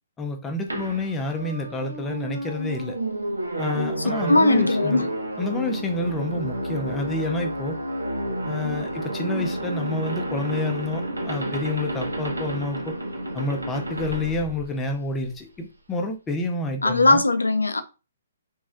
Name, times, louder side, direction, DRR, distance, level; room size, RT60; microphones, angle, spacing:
voice 1, 0.2-3.0 3.6-5.0 5.4-7.8 8.5-12.9 13.3-17.2, left 2 dB, 15° left, 0.6 m, -29 dB
sound 1, 0.7-15.2, right 1 dB, 85° right, 0.7 m, -30 dB
voice 2, 4.0-5.1 16.8-17.8, left 2 dB, 85° left, 0.4 m, -20 dB
3.0 x 2.6 x 2.4 m
figure-of-eight pair, 130°, 0 cm